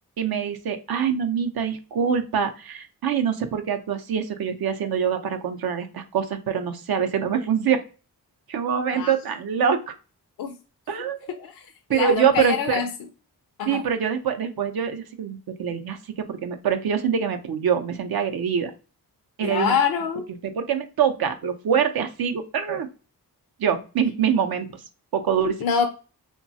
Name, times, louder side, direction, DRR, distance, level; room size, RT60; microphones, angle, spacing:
voice 1, 0.2-7.8 8.5-9.9 10.9-11.4 11.9-12.8 13.7-18.7 19.4-19.8 20.3-22.9 23.6-24.7 25.1-25.6, right 7 dB, 70° right, 0.6 m, -24 dB
voice 2, 11.9-12.9 13.6-13.8 19.4-20.3 25.6-25.9, left 7 dB, 65° left, 0.5 m, -24 dB
3.0 x 2.2 x 2.6 m
cardioid pair, 50°, 39 cm